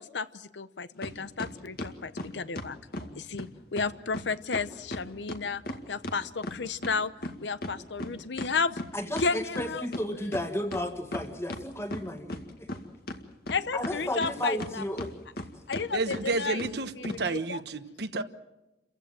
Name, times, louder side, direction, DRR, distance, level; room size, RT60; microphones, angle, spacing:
voice 1, 0.0-2.8 3.2-5.6 5.9-7.1 7.4-8.8 9.2-9.8 13.5-14.8 15.7-16.6 17.0-17.6, left 4 dB, 80° left, 13 dB, 0.8 m, -32 dB
sound 1, 1.0-1.1 1.4-3.1 3.4-3.5 3.8-4.2 4.5-7.0 7.2-10.0 10.3-10.4 10.7-11.6 11.9-12.8 13.1-14.7 15.0-15.5 15.7-15.8 16.1-16.2 16.6-16.7 17.0-17.2, left 1 dB, 60° left, 2.0 m, -36 dB
voice 2, 8.9-12.8 13.7-15.2, left 1 dB, 15° left, 7 dB, 1.9 m, -33 dB
voice 3, 15.9-18.2, right 3 dB, 65° right, 9 dB, 1.2 m, -31 dB
29.5 x 15.5 x 7.7 m, 1.0 s
head